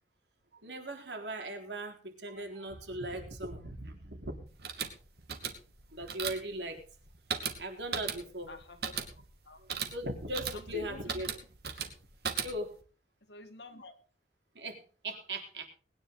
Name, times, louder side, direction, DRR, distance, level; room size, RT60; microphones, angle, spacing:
voice 1, 0.6-4.5 5.9-6.8 7.6-8.5 9.9-11.3 12.4-12.7 14.5-15.7, right 1 dB, 85° right, 3 dB, 3.9 m, -39 dB
sound 1, 4.5-12.8, right 6 dB, 65° right, 2.4 m, -39 dB
voice 2, 8.5-9.0 9.5-9.7 10.5-11.2 13.2-13.9, left 2 dB, 85° left, 8 dB, 2.1 m, -47 dB
20.5 x 10.0 x 3.9 m, 0.38 s
head